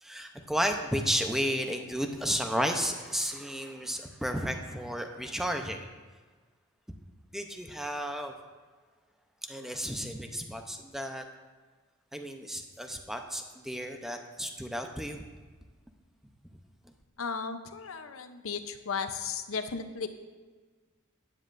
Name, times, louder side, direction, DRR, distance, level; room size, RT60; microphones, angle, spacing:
voice 1, 0.0-5.9 7.3-8.3 9.5-11.2 12.1-15.2, equal, ahead, 5 dB, 0.6 m, -33 dB
voice 2, 17.2-20.1, left 5 dB, 75° left, 9 dB, 0.7 m, -35 dB
13.0 x 9.7 x 2.6 m, 1.4 s
head